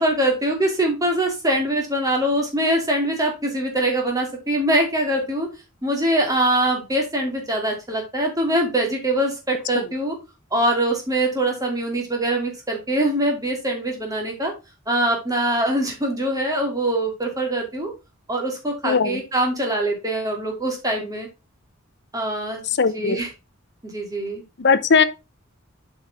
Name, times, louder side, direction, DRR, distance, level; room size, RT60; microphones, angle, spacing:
voice 1, 0.0-5.5 5.8-10.2 10.5-14.5 14.9-17.9 18.3-21.3 22.1-22.6 22.9-23.3 23.9-24.4, right 1 dB, 15° right, 2.5 m, -23 dB
voice 2, 18.8-19.2 22.8-23.2 24.6-25.0, left 5 dB, 55° left, 0.7 m, -18 dB
7.9 x 5.4 x 3.5 m
head